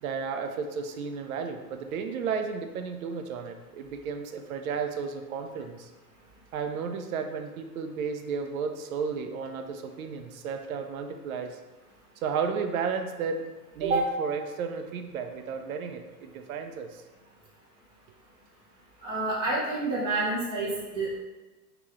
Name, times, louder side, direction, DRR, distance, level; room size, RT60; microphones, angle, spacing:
voice 1, 0.0-5.9 6.5-11.6 12.2-13.4 13.8-17.0 21.0-21.1, right 5 dB, 65° right, 6 dB, 0.5 m, -33 dB
voice 2, 19.0-20.7 20.9-21.2, right 2 dB, 10° right, -7 dB, 0.4 m, -28 dB
3.1 x 2.9 x 3.6 m, 1.2 s
supercardioid pair, 150°, 46 cm